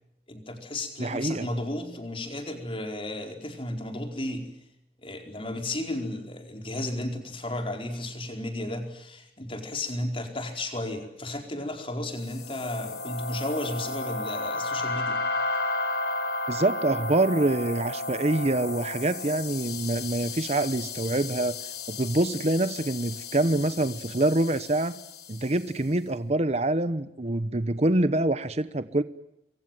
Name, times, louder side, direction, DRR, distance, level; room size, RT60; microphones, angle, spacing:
voice 1, 0.3-4.6 5.0-15.2, left 1 dB, 30° left, 4 dB, 4.7 m, -33 dB
voice 2, 1.0-1.5 16.5-21.6 21.9-25.0 25.3-29.0, right 2 dB, 40° right, 13 dB, 1.0 m, -25 dB
sound 1, 12.2-25.6, left 2 dB, 60° left, 4.2 m, -33 dB
27.0 x 23.5 x 7.7 m, 0.83 s
head